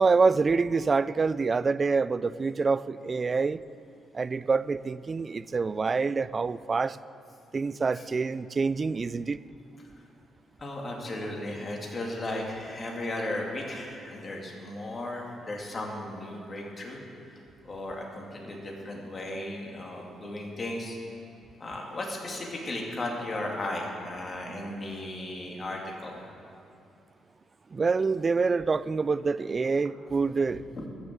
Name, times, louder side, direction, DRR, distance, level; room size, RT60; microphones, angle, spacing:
voice 1, 0.0-3.6 4.1-7.0 7.5-9.4 27.7-30.6, right 4 dB, 35° right, 17 dB, 0.3 m, -26 dB
voice 2, 10.6-17.0 17.6-21.0 21.6-26.2 30.1-30.2 30.5-30.9, left 1 dB, 35° left, -1 dB, 2.5 m, -35 dB
14.0 x 6.7 x 7.5 m, 2.5 s
cardioid pair, 90°, 0 cm